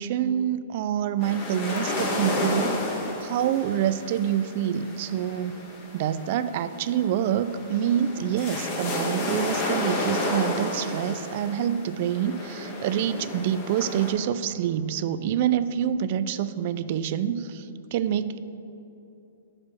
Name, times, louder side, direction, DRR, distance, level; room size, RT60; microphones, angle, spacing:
voice 1, 0.0-2.8 3.2-5.6 5.9-18.4, right 9 dB, 50° right, 13 dB, 0.4 m, -26 dB
sound 1, 1.2-14.1, left 2 dB, 35° left, 1.5 m, -32 dB
6.5 x 6.1 x 7.3 m, 2.9 s
hypercardioid pair, 135°, 0 cm